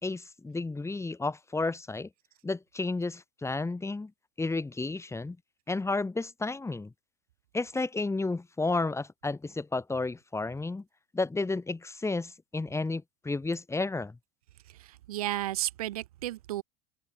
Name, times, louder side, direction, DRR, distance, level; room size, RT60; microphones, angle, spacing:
voice 1, 0.0-2.1 2.4-4.1 4.4-5.4 5.7-6.9 7.5-10.8 11.1-14.2, left 3 dB, 15° left, 3.2 m, -32 dB
voice 2, 14.8-16.6, right 14 dB, 80° right, 2.1 m, -33 dB
hypercardioid pair, 75°, 19 cm